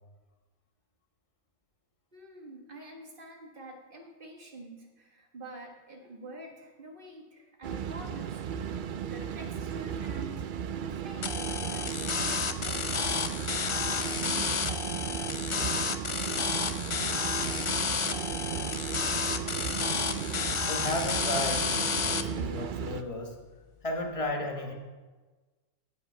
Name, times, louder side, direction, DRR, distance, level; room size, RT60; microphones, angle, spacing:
voice 1, 2.1-13.5 17.2-17.7 18.5-18.6 19.7-19.9, right 1 dB, 45° right, 2 dB, 1.7 m, -48 dB
sound 1, 7.6-23.0, right 8 dB, 65° right, 0.5 m, -35 dB
sound 2, 11.2-22.2, left 5 dB, 45° left, 0.4 m, -31 dB
voice 2, 20.7-23.4 23.8-24.7, left 1 dB, 25° left, 2 dB, 1.4 m, -34 dB
16.0 x 5.6 x 5.6 m, 1.3 s
omnidirectional pair, 1.3 m